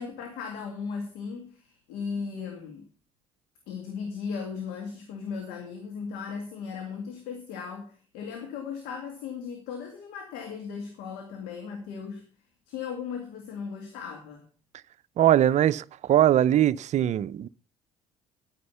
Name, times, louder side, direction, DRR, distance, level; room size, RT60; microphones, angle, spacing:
voice 1, 0.0-2.9 3.7-12.3 12.7-14.4, left 6 dB, 70° left, 2.2 m, -37 dB
voice 2, 15.2-17.5, right 11 dB, 50° right, 0.5 m, -21 dB
10.5 x 9.5 x 5.6 m
hypercardioid pair, 60°, 16 cm